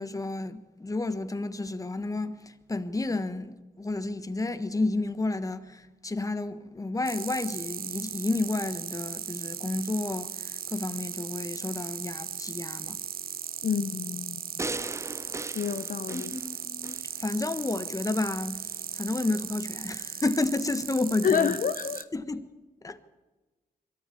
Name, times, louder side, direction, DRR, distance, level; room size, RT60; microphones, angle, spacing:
voice 1, 0.0-13.0 16.1-18.6 18.9-21.5 22.1-22.5 22.8-23.0, left 2 dB, 20° left, 1.3 m, -31 dB
sound 1, 7.0-22.0, right 8 dB, 70° right, 0.9 m, -37 dB
voice 2, 13.6-14.4 15.5-16.3 21.2-22.1, left 7 dB, 60° left, 0.8 m, -28 dB
sound 2, 14.6-17.1 17.6-17.7, right 2 dB, 20° right, 0.7 m, -37 dB
22.5 x 13.5 x 8.5 m
cardioid pair, 80°, 16 cm